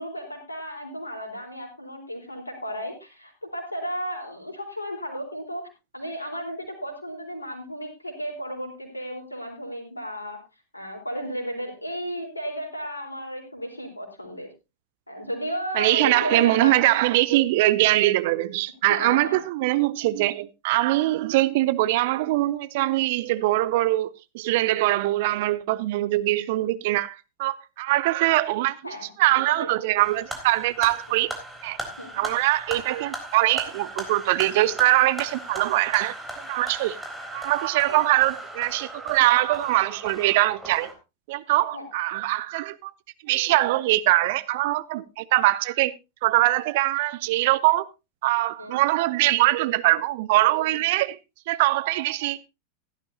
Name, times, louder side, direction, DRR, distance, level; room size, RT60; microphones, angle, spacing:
voice 1, 0.0-10.4 10.7-14.5 15.1-16.9 18.9-19.4 28.8-29.1 29.5-29.7 32.0-32.1 37.9-38.0 41.5-41.9 48.6-48.8 50.7-50.8, equal, 85° left, 4.0 m, -34 dB
voice 2, 15.8-31.4 31.6-31.8 32.1-36.2 36.5-37.0 37.3-40.9 41.3-42.9 43.2-45.9 46.2-47.9 48.2-51.2 51.5-52.4, right 17 dB, 50° right, 0.5 m, -22 dB
sound 1, 30.0-40.9, right 1 dB, 5° right, 3.7 m, -38 dB
16.0 x 12.5 x 2.8 m
figure-of-eight pair, 90°, 0 cm